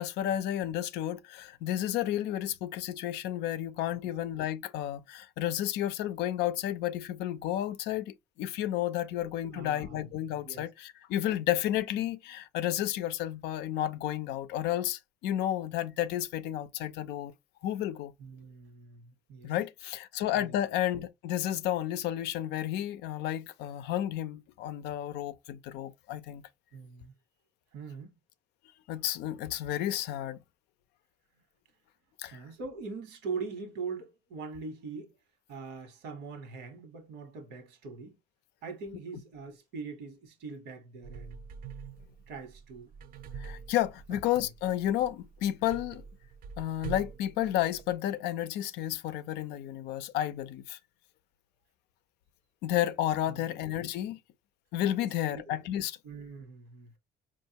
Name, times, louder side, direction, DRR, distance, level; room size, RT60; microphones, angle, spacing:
voice 1, 0.0-17.3 17.6-18.1 19.4-26.4 28.9-30.4 32.2-32.4 43.4-46.0 46.6-50.8 52.6-54.2 54.7-56.0, left 12 dB, 85° left, 0.5 m, -32 dB
voice 2, 9.2-10.1 10.4-10.6 18.2-19.5 20.3-20.6 26.7-27.1 27.7-28.1 32.3-35.1 35.5-38.2 38.6-41.4 42.3-42.9 44.1-44.2 53.3-53.6 55.0-55.5 56.0-57.0, right 4 dB, 85° right, 1.3 m, -42 dB
sound 1, 41.0-48.0, right 6 dB, 60° right, 0.4 m, -45 dB
4.5 x 2.5 x 2.8 m
cardioid pair, 110°, 17 cm